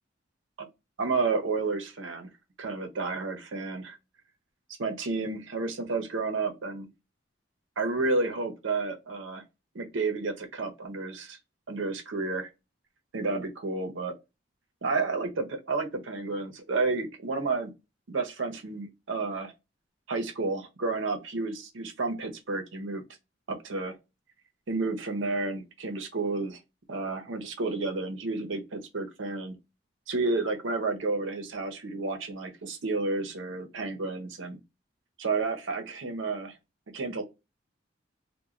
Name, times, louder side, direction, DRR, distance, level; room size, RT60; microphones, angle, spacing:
voice 1, 1.0-2.3 2.6-4.0 4.8-6.9 7.8-9.4 9.7-11.4 11.7-12.5 13.1-14.1 14.8-17.7 18.1-19.5 20.1-23.0 23.5-23.9 24.7-26.6 26.9-29.5 30.1-34.6 35.2-36.5 36.9-37.2, right 3 dB, 80° right, 0.7 m, -31 dB
2.4 x 2.2 x 3.0 m
head